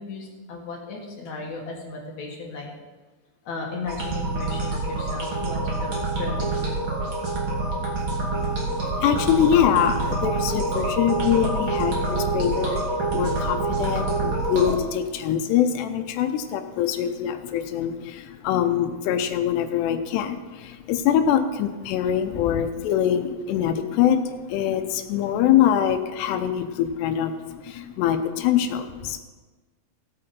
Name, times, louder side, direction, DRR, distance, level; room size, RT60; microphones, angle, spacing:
voice 1, 0.0-2.7 3.5-6.8 10.0-10.2 13.0-13.1 22.5-22.6 26.1-26.3, left 3 dB, 55° left, -1 dB, 2.5 m, -36 dB
sound 1, 3.9-14.8, right 2 dB, 35° right, 2.5 m, -26 dB
voice 2, 8.4-29.2, left 10 dB, 80° left, 8 dB, 2.7 m, -24 dB
17.0 x 8.9 x 4.3 m, 1.3 s
omnidirectional pair, 4.9 m